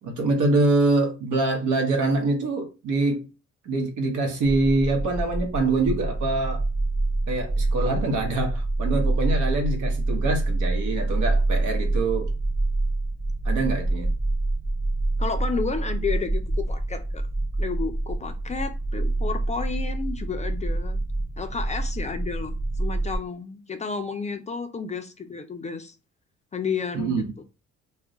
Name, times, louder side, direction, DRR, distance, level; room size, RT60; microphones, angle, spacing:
voice 1, 0.0-3.3 3.6-6.6 7.3-12.3 13.4-14.1 26.9-27.3, right 2 dB, 80° right, 0.9 m, -24 dB
sound 1, 4.4-23.2, right 2 dB, 30° right, 1.1 m, -26 dB
voice 2, 15.2-17.3 17.6-21.0 21.4-26.0 26.5-27.4, left 5 dB, 25° left, 0.3 m, -31 dB
2.3 x 2.1 x 3.7 m
cardioid pair, 90°, 30 cm